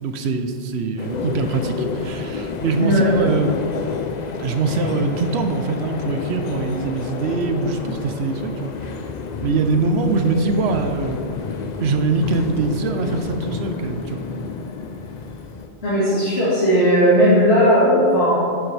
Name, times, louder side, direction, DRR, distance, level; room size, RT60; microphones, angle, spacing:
voice 1, 0.0-3.6 4.4-8.7 9.4-11.2 11.8-14.2, right 3 dB, 85° right, 6 dB, 1.0 m, -23 dB
sound 1, 1.0-15.7, left 4 dB, 50° left, 0.6 m, -29 dB
voice 2, 15.8-18.4, equal, 80° left, -10 dB, 2.2 m, -16 dB
9.3 x 7.1 x 3.3 m, 2.4 s
omnidirectional pair, 1.1 m